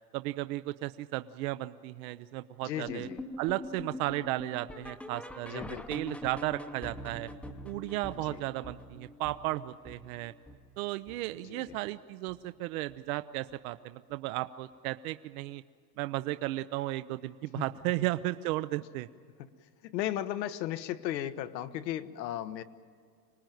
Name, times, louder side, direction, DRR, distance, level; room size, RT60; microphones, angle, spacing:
voice 1, 0.1-3.1 3.4-5.6 5.9-7.3 7.6-10.3 10.8-15.6 16.0-19.1, right 17 dB, 60° right, 12 dB, 0.7 m, -34 dB
voice 2, 2.6-3.2 5.5-6.0 8.2-8.4 11.4-11.8 17.5-17.6 18.0-18.1 19.8-22.6, left 12 dB, 90° left, 11 dB, 1.3 m, -36 dB
sound 1, 2.9-12.0 12.3-12.6 12.9-13.0 13.5-13.6 14.1-14.2, left 1 dB, 5° left, 0.7 m, -45 dB
25.5 x 19.0 x 9.2 m, 2.2 s
supercardioid pair, 155°, 49 cm